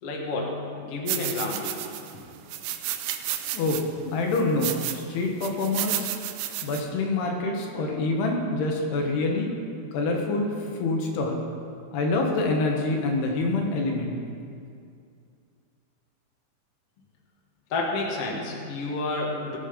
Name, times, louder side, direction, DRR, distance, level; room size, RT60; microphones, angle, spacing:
voice 1, 0.0-1.8 2.1-2.2 17.7-19.6, left 2 dB, 50° left, -1 dB, 2.0 m, -30 dB
sound 1, 1.1-2.1 2.5-3.8 4.3-5.0 5.4-6.8, right 12 dB, 80° right, 2.3 m, -31 dB
voice 2, 3.5-6.1 6.6-9.5 9.9-10.5 10.8-11.4 11.9-14.2, left 2 dB, 75° left, 1 dB, 3.3 m, -26 dB
19.5 x 7.5 x 5.2 m, 2.4 s
omnidirectional pair, 4.9 m